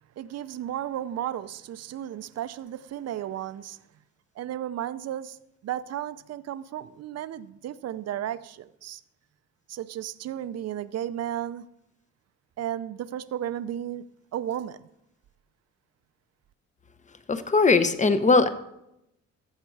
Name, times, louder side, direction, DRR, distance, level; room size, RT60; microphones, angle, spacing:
voice 1, 0.2-3.8 4.4-5.4 5.6-9.0 9.7-11.6 12.6-14.0 14.3-14.9, right 11 dB, 55° right, 0.6 m, -34 dB
voice 2, 17.3-18.5, left 3 dB, 25° left, 0.8 m, -20 dB
14.5 x 6.6 x 4.7 m
cardioid pair, 90°, 30 cm